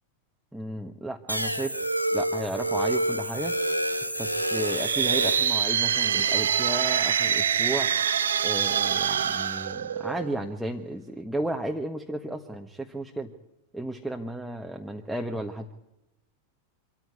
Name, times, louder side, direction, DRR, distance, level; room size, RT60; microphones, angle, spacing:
voice 1, 0.5-1.8 2.1-3.5 4.2-7.9 8.4-13.3 13.7-15.7, right 1 dB, ahead, 1 dB, 1.4 m, -33 dB
sound 1, 1.3-5.7, right 1 dB, 90° right, 1.7 m, -28 dB
sound 2, 4.5-10.5, right 8 dB, 65° right, 0.8 m, -25 dB
25.0 x 14.5 x 9.4 m, 0.90 s
figure-of-eight pair, 90°, 0 cm